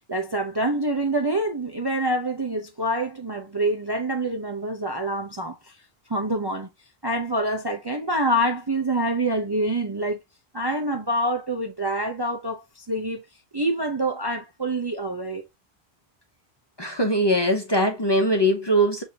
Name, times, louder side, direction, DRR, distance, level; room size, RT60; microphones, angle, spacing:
voice 1, 0.1-5.6 6.1-6.7 7.0-10.2 10.5-13.2 13.5-15.5, right 1 dB, 30° right, 0.5 m, -26 dB
voice 2, 16.8-19.0, equal, 30° left, 0.7 m, -21 dB
6.3 x 2.6 x 2.7 m
omnidirectional pair, 1.1 m